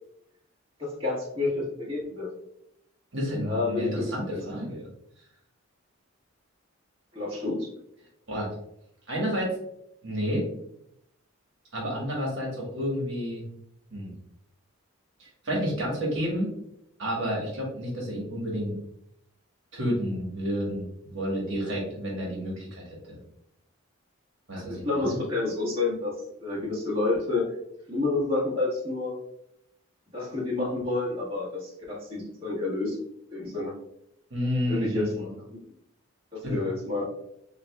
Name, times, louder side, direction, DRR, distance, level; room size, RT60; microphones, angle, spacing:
voice 1, 1.0-2.3 3.4-4.4 7.1-7.7 24.5-27.5 27.9-29.2 30.1-33.0 33.3-33.7 34.7-35.6 36.3-37.1, left 3 dB, 25° right, -7 dB, 1.4 m, -29 dB
voice 2, 3.1-4.9 8.3-8.5 9.1-9.5 10.0-10.5 11.7-13.4 13.9-14.1 15.2-16.5 17.0-18.7 19.7-23.2 24.5-25.2 34.3-35.3 36.4-36.6, equal, 60° right, -3 dB, 1.3 m, -30 dB
6.8 x 2.4 x 2.3 m, 0.75 s
head